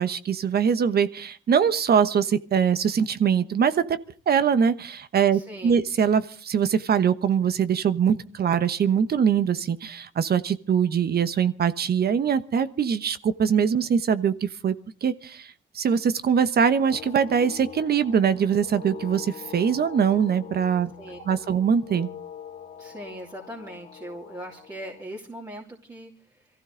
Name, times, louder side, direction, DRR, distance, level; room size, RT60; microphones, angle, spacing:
voice 1, 0.0-4.0 4.3-14.7 15.0-20.9 21.3-22.1, right 7 dB, 50° right, 13 dB, 1.1 m, -23 dB
voice 2, 5.3-5.8 21.0-21.2 22.8-26.5, right 1 dB, 20° right, -3 dB, 3.0 m, -40 dB
sound 1, 16.9-25.0, left 9 dB, 65° left, 2.2 m, -43 dB
23.5 x 15.0 x 3.9 m, 0.40 s
cardioid pair, 90°, 20 cm